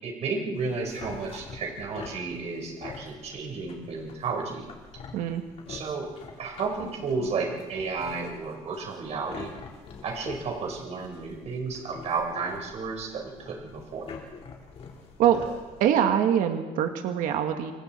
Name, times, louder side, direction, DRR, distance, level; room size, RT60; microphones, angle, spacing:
voice 1, 0.0-4.6 5.7-6.1 6.4-9.5 10.0-14.1, right 4 dB, 55° right, 1 dB, 4.9 m, -32 dB
sound 1, 0.5-15.9, left 5 dB, 50° left, 4.3 m, -45 dB
voice 2, 5.1-5.4 15.2-15.4 15.8-17.7, right 9 dB, 85° right, 6 dB, 1.8 m, -23 dB
29.0 x 24.5 x 4.5 m, 1.3 s
cardioid pair, 150°, 14 cm